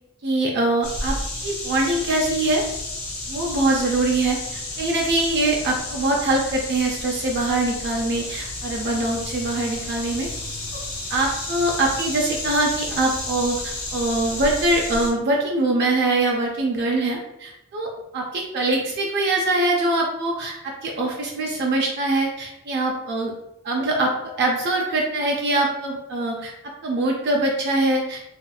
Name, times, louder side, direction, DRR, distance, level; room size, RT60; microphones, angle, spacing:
voice 1, 0.2-1.2 1.4-2.6 3.3-10.3 10.7-10.8 11.1-23.3 23.6-26.5 26.8-28.2, right 2 dB, 50° right, 0 dB, 0.4 m, -23 dB
sound 1, 0.8-15.1, left 2 dB, 70° left, 1.1 m, -32 dB
3.0 x 2.8 x 2.2 m, 0.87 s
head